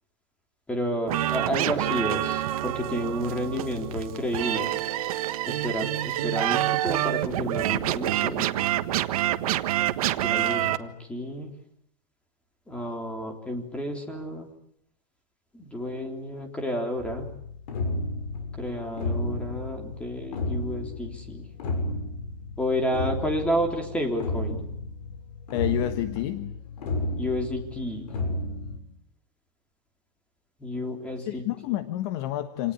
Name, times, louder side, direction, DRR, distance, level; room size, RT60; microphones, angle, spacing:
voice 1, 0.7-4.7 5.5-8.5 10.2-11.5 12.7-14.5 15.5-17.3 18.6-21.5 22.6-24.6 27.2-28.1 30.6-31.8, equal, 5° left, 4 dB, 3.5 m, -31 dB
sound 1, 1.1-10.8, right 14 dB, 60° right, 1.5 m, -27 dB
sound 2, 17.0-28.8, left 2 dB, 75° left, 7.1 m, -32 dB
voice 2, 25.5-26.5 31.3-32.7, left 14 dB, 35° left, 10 dB, 1.3 m, -29 dB
28.0 x 19.0 x 9.9 m, 0.73 s
supercardioid pair, 175°, 21 cm